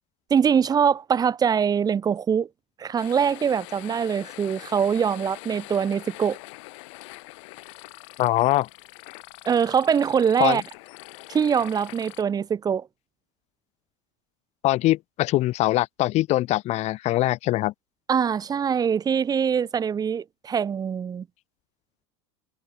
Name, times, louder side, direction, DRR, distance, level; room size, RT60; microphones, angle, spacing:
voice 1, 0.3-2.5 2.8-6.4 9.5-10.6 11.3-12.9 18.1-21.2, right 7 dB, 25° right, 0.8 m, -23 dB
sound 1, 3.0-12.2, left 26 dB, 70° left, 1.5 m, -44 dB
voice 2, 8.2-8.7 10.4-10.6 14.6-17.7, left 16 dB, 45° left, 0.5 m, -22 dB
supercardioid pair, 105°, 16 cm